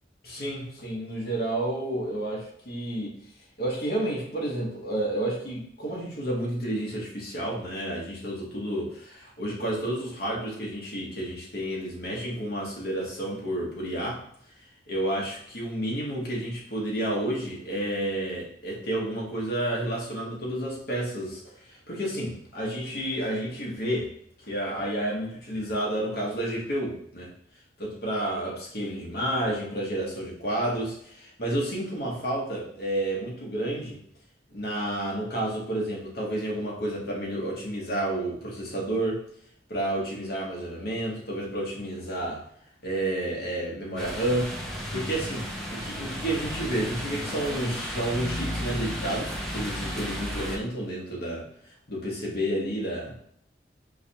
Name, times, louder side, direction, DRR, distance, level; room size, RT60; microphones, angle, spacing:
voice 1, 0.2-3.2 3.6-14.2 14.9-24.1 24.4-27.3 27.8-34.0 34.5-39.2 39.7-42.4 42.8-44.5 44.9-51.5 51.9-53.2, right 1 dB, 60° left, -3 dB, 1.1 m, -30 dB
sound 1, 44.0-50.6, equal, 5° left, 0.5 m, -33 dB
4.6 x 2.2 x 2.8 m, 0.67 s
head